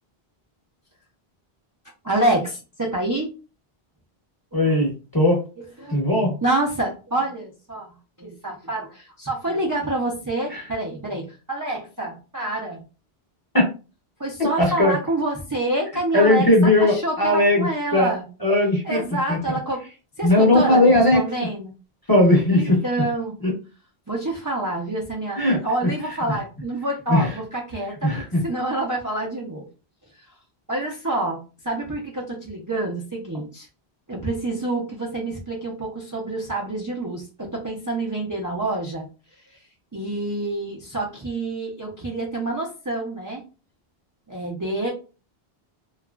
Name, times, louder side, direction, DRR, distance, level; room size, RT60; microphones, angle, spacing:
voice 1, 2.0-3.3 4.5-4.7 5.8-7.9 8.2-12.8 14.2-18.2 18.8-19.8 20.2-21.7 22.5-23.4 24.1-28.1 28.4-29.7 30.7-33.7 34.1-39.1 39.5-39.6 39.9-43.4 44.3-44.9, right 2 dB, 25° right, -3 dB, 0.4 m, -27 dB
voice 2, 4.5-5.4 5.9-6.3 10.5-10.6 13.5-13.7 14.6-15.0 16.1-18.1 18.4-19.0 19.3-19.4 20.2-21.2 22.1-22.8 23.4-23.5 25.4-25.6 27.1-27.4 28.0-28.4, left 1 dB, 25° left, -1 dB, 0.7 m, -18 dB
2.8 x 2.4 x 2.3 m, 0.33 s
omnidirectional pair, 1.0 m